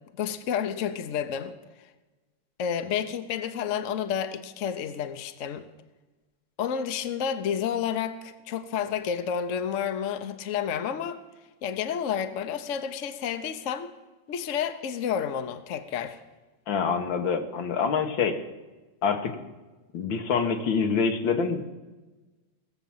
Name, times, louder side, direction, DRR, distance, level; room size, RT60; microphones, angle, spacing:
voice 1, 0.2-1.5 2.6-5.7 6.6-11.2 11.6-13.9 14.3-16.2, left 8 dB, 55° left, 1.0 m, -30 dB
voice 2, 16.7-18.4 19.0-19.4 19.9-21.7, left 5 dB, 80° left, 1.9 m, -26 dB
18.5 x 7.4 x 7.2 m
omnidirectional pair, 2.1 m